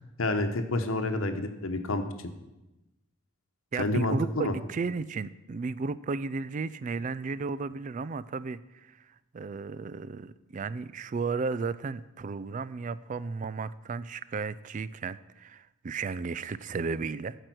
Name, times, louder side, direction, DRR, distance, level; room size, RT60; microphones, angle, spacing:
voice 1, 0.2-2.0 3.8-4.6, left 2 dB, 85° left, 7 dB, 1.0 m, -28 dB
voice 2, 3.7-8.6 8.9-9.0 9.3-17.4, right 4 dB, 40° right, 17 dB, 0.3 m, -34 dB
13.5 x 5.0 x 6.1 m, 0.99 s
head